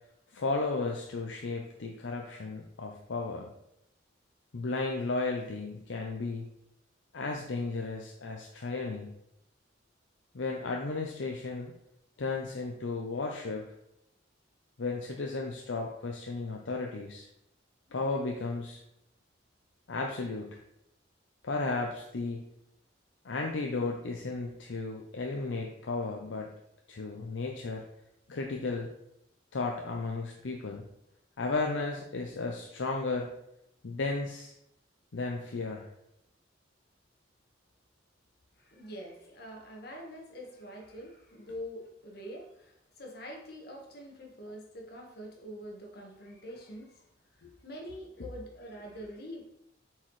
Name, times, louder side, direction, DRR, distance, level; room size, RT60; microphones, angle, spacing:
voice 1, 0.3-3.5 4.5-6.5 7.1-9.1 10.3-11.7 12.2-13.7 14.8-17.3 17.9-18.8 19.9-20.6 21.4-22.4 23.2-26.5 26.9-27.8 28.3-28.9 29.5-30.8 31.4-33.3 33.8-34.5 35.1-35.9 47.4-47.6, left 3 dB, 75° left, 1 dB, 0.6 m, -34 dB
voice 2, 38.6-47.0 47.6-49.5, equal, 55° left, 1 dB, 1.4 m, -45 dB
7.3 x 4.6 x 3.2 m, 0.81 s
head